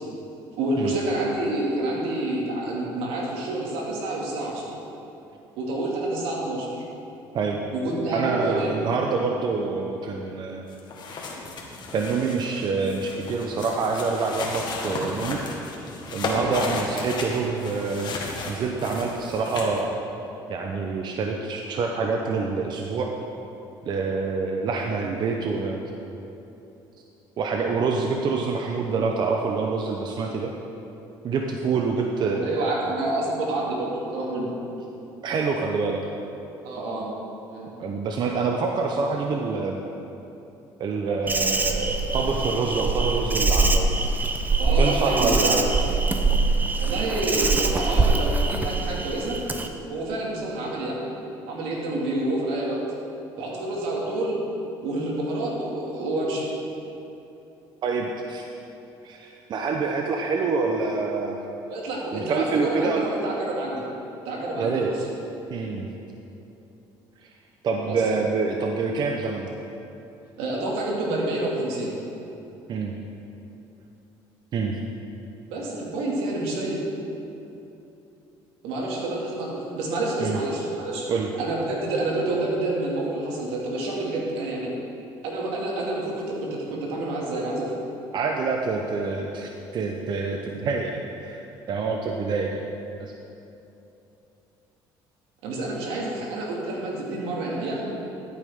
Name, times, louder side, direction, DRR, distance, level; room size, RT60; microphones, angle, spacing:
voice 1, 0.5-4.7 5.6-6.8 7.7-8.7 16.3-16.5 32.4-34.5 36.6-37.1 37.5-37.7 44.6-45.5 46.8-49.4 49.8-51.0 51.5-52.8 53.4-54.4 54.8-56.5 61.6-63.8 64.2-65.0 67.9-68.0 70.4-71.9 75.5-76.8 78.6-81.1 81.4-84.7 85.2-87.7 95.4-97.9, right 2 dB, 80° right, -3 dB, 2.3 m, -28 dB
voice 2, 8.1-10.6 11.9-15.4 16.1-19.9 20.5-23.1 23.8-25.8 27.4-30.5 31.2-32.8 35.2-36.0 37.8-39.8 40.8-44.0 44.8-45.7 57.8-58.5 59.0-61.4 62.1-63.1 64.6-64.9 65.5-65.9 67.2-67.3 67.6-69.5 72.7-72.9 74.5-74.8 80.2-80.4 81.1-81.3 88.1-91.4 91.7-92.6 93.0-93.1, right 4 dB, 50° right, 1 dB, 0.8 m, -26 dB
sound 1, 10.7-19.8, left 3 dB, 50° left, 1.7 m, -34 dB
Insect, 41.3-49.7, right 3 dB, 20° right, 0.8 m, -23 dB
13.5 x 8.5 x 3.7 m, 2.9 s
supercardioid pair, 100°, 10 cm